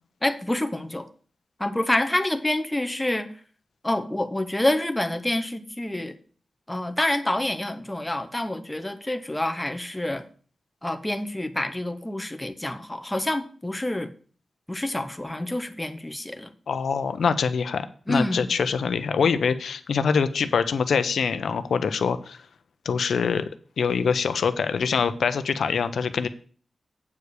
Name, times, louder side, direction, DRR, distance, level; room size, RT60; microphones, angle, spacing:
voice 1, 0.2-1.1 1.6-3.3 3.8-6.1 6.7-10.2 10.8-14.1 14.7-16.5 18.1-18.5, left 1 dB, 10° left, 8 dB, 0.7 m, -27 dB
voice 2, 16.7-22.4 22.8-23.5 23.8-26.3, left 6 dB, 90° left, 11 dB, 0.7 m, -24 dB
8.4 x 4.8 x 6.7 m, 0.43 s
wide cardioid pair, 175°, 0 cm